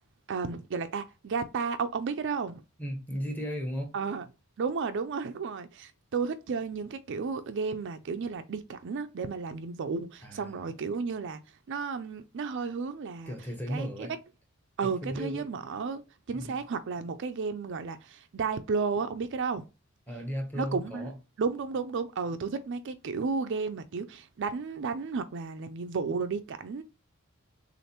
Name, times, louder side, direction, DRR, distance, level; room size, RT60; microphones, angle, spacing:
voice 1, 0.3-2.6 3.9-4.2 4.6-11.4 11.7-13.3 13.7-14.1 14.8-16.0 16.3-19.6 20.6-21.1 21.4-26.8, right 5 dB, 55° right, 0.4 m, -33 dB
voice 2, 2.8-3.9 10.2-10.7 13.3-14.1 14.8-15.4 16.3-16.6 20.1-21.1, equal, 10° left, 1.0 m, -35 dB
6.4 x 2.5 x 2.9 m
head